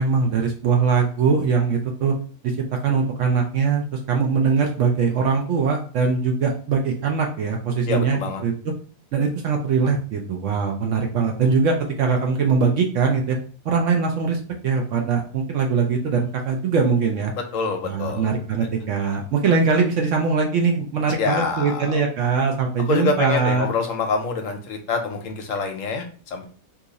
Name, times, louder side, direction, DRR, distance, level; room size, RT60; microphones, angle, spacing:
voice 1, 0.0-2.1 2.4-2.6 2.8-8.7 9.1-13.4 13.6-17.3 17.8-23.7, right 5 dB, 70° right, 2 dB, 0.8 m, -21 dB
voice 2, 7.9-8.4 17.5-18.3 21.2-22.0 22.9-26.4, left 4 dB, 65° left, 4 dB, 0.9 m, -26 dB
2.8 x 2.4 x 3.8 m, 0.42 s
omnidirectional pair, 1.6 m